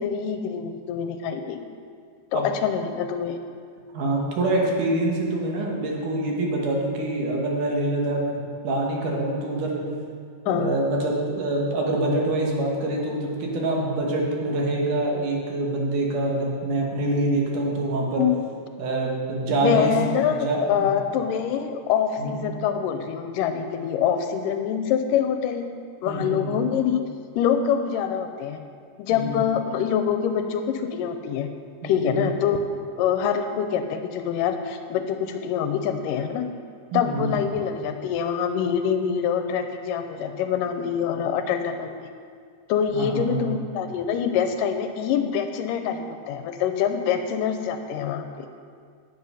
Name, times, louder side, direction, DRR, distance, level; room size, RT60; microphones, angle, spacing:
voice 1, 0.0-1.6 2.3-3.4 10.5-10.7 18.2-18.4 19.6-25.7 26.0-27.0 27.4-28.6 29.0-31.5 31.8-32.6 33.0-36.5 36.9-42.1 42.7-48.5, left 8 dB, 80° left, 7 dB, 2.1 m, -25 dB
voice 2, 3.9-9.8 10.5-18.3 18.8-19.9 20.4-20.9 22.2-22.4 26.1-26.6 29.1-29.4 31.8-32.2 36.9-37.3 42.9-43.6, right 2 dB, 70° right, -2 dB, 2.8 m, -25 dB
9.5 x 7.4 x 5.5 m, 2.2 s
omnidirectional pair, 4.0 m